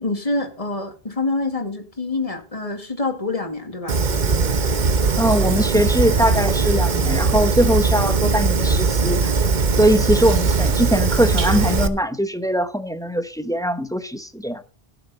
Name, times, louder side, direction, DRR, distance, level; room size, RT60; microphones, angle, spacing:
voice 1, 0.0-3.9, left 2 dB, 35° left, 2.2 m, -26 dB
Fire, 3.9-11.9, right 4 dB, 50° right, 1.0 m, -20 dB
voice 2, 5.2-9.3 9.8-14.6, equal, 5° left, 0.8 m, -21 dB
16.5 x 6.9 x 4.0 m
omnidirectional pair, 1.0 m